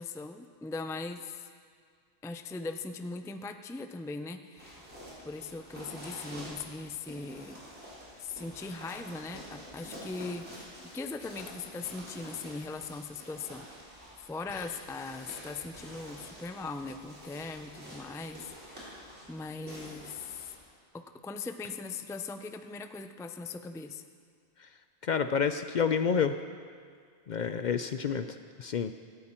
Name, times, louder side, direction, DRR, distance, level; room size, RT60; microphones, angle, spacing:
voice 1, 0.0-1.5 2.2-4.8 5.2-7.6 8.2-20.5 20.9-24.0, left 3 dB, 5° left, 8 dB, 0.3 m, -40 dB
sound 1, 4.6-20.5, equal, 90° right, 4.7 m, -48 dB
voice 2, 25.0-26.4 27.3-28.9, left 6 dB, 55° left, 9 dB, 0.6 m, -29 dB
17.5 x 14.0 x 4.4 m, 2.1 s
omnidirectional pair, 1.1 m